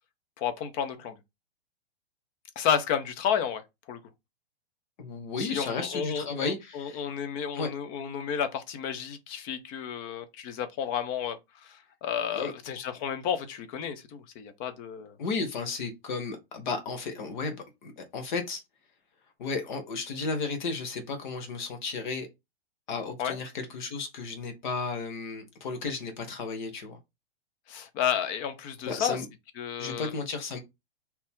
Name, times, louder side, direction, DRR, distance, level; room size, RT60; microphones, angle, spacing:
voice 1, 0.4-1.2 2.6-3.6 3.9-4.0 5.4-15.2 23.2-23.4 27.7-29.2 29.6-30.1, left 8 dB, 25° left, 0.6 m, -32 dB
voice 2, 5.0-7.0 7.5-7.7 12.3-12.5 15.2-18.6 19.4-22.3 22.9-27.0 28.9-29.3 29.8-30.6, left 4 dB, 45° left, 1.1 m, -33 dB
4.0 x 2.8 x 3.6 m
figure-of-eight pair, 105°, 32 cm